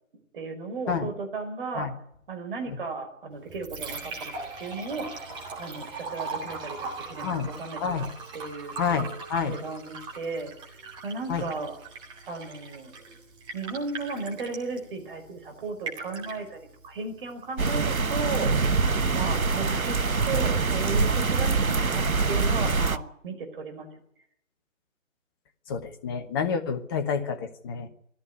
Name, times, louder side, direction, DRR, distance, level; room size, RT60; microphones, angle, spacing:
voice 1, 0.3-1.9 2.3-5.2 5.6-8.1 8.3-8.7 9.4-10.5 11.0-11.8 12.3-12.9 13.5-20.0 20.3-23.9, right 4 dB, 40° right, 6 dB, 5.2 m, -35 dB
Liquid, 3.3-22.3, right 4 dB, 10° right, 2.5 m, -41 dB
voice 2, 7.8-8.1 8.8-9.6 11.3-11.5 25.7-27.9, left 6 dB, 15° left, 7 dB, 1.2 m, -29 dB
sound 1, 17.6-23.0, right 4 dB, 85° right, 1.2 m, -24 dB
20.5 x 14.5 x 9.5 m, 0.73 s
figure-of-eight pair, 145°, 41 cm